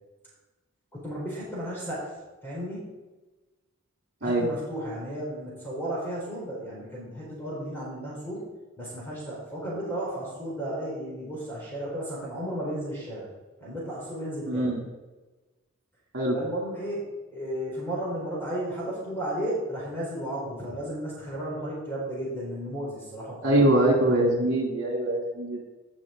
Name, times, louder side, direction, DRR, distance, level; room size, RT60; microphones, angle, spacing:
voice 1, 0.9-2.1 2.4-2.8 4.2-8.4 8.8-13.3 13.6-14.7 16.3-17.0 17.3-23.5, right 1 dB, 10° left, -6 dB, 3.8 m, -34 dB
voice 2, 14.5-14.8 16.1-16.4 23.4-25.6, right 1 dB, 60° right, -1 dB, 3.1 m, -23 dB
17.0 x 6.0 x 3.8 m, 1.2 s
head